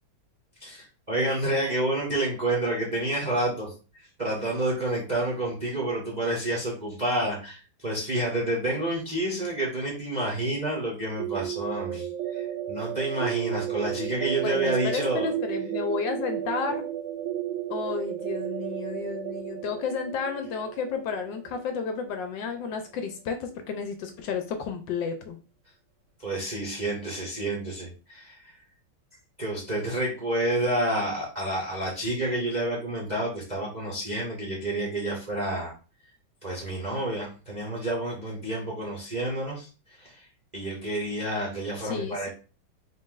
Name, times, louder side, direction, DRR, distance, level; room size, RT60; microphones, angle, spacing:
voice 1, 0.6-15.3 26.2-28.5 29.4-35.7 36.4-39.7 40.0-40.2 40.5-42.3, right 1 dB, 40° right, -4 dB, 0.6 m, -29 dB
sound 1, 11.2-22.9, right 12 dB, 80° right, 1.3 m, -33 dB
voice 2, 14.4-16.8 17.7-25.4 41.8-42.3, left 5 dB, 75° left, 6 dB, 1.1 m, -32 dB
3.8 x 2.5 x 3.7 m, 0.35 s
omnidirectional pair, 2.2 m